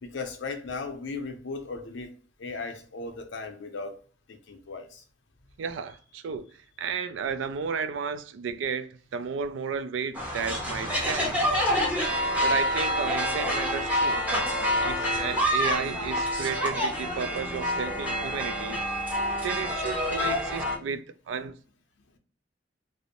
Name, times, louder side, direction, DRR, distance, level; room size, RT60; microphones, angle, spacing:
voice 1, 0.0-4.0 4.3-5.0, left 4 dB, 75° left, 0.5 m, -37 dB
voice 2, 5.6-6.5 6.8-11.4 12.4-14.2 14.8-18.8 19.4-21.6, right 6 dB, 80° right, 0.3 m, -33 dB
sound 1, 10.2-20.8, equal, 10° right, 0.6 m, -27 dB
2.5 x 2.0 x 2.8 m
head